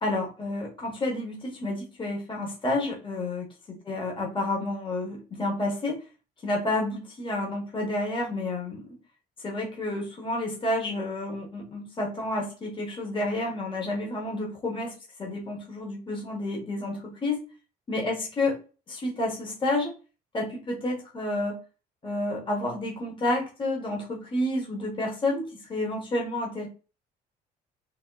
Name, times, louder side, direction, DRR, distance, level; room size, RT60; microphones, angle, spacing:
voice 1, 0.0-3.5 3.9-6.0 6.4-9.0 9.4-14.9 15.2-17.4 17.9-18.5 18.9-19.9 20.3-21.6 22.0-26.7, left 2 dB, 30° left, -1 dB, 1.2 m, -30 dB
3.6 x 2.1 x 3.8 m, 0.33 s
cardioid pair, 110°, 17 cm